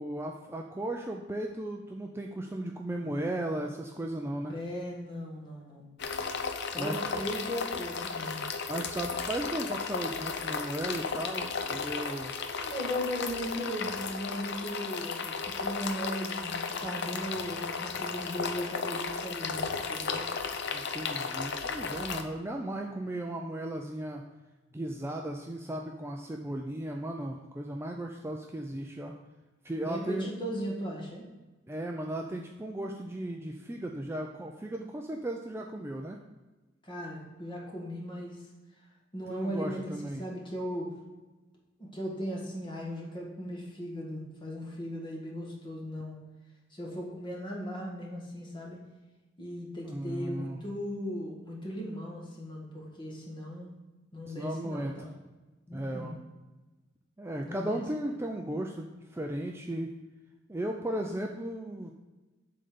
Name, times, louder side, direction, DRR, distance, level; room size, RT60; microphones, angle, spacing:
voice 1, 0.0-4.6 6.8-7.0 8.7-12.3 20.7-24.2 24.7-29.1 29.6-30.3 31.7-36.2 39.3-40.2 49.8-50.6 54.3-55.1 55.7-56.2 57.2-59.9 60.5-61.9, right 1 dB, 15° right, 2 dB, 0.4 m, -36 dB
voice 2, 4.5-5.9 6.6-8.5 12.3-20.2 29.8-31.3 36.8-38.4 39.1-40.9 41.8-46.1 46.7-48.8 49.4-53.7 54.1-55.1 55.7-56.1 57.4-57.8, equal, 25° left, -2 dB, 1.8 m, -37 dB
sound 1, 6.0-22.2, left 5 dB, 60° left, 0.6 m, -34 dB
7.7 x 3.9 x 6.7 m, 1.2 s
head